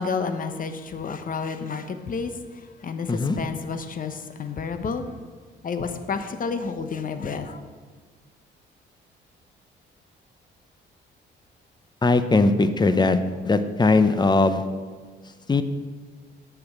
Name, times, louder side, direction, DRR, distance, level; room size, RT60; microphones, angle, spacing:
voice 1, 0.0-2.3 2.8-5.0 5.6-7.6, left 5 dB, 45° left, 9 dB, 1.0 m, -30 dB
voice 2, 12.0-13.2 13.4-14.6 15.5-15.6, left 3 dB, 20° left, 11 dB, 0.8 m, -19 dB
8.6 x 6.0 x 7.3 m, 1.5 s
cardioid pair, 90°, 20 cm